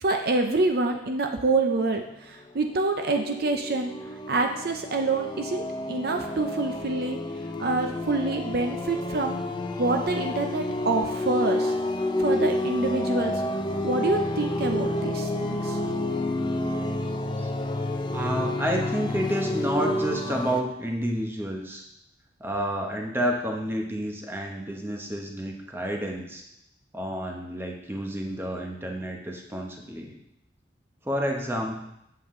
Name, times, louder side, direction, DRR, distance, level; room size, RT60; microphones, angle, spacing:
voice 1, 0.0-3.9 4.3-7.2 7.6-9.4 9.8-11.7 12.2-15.8, right 3 dB, 55° right, 5 dB, 0.6 m, -27 dB
sound 1, 2.5-20.6, left 1 dB, 25° left, 0.5 m, -29 dB
voice 2, 18.1-21.8 22.4-26.4 26.9-30.2 31.0-31.8, equal, 10° right, 1 dB, 1.0 m, -30 dB
7.8 x 7.7 x 3.7 m, 0.81 s
head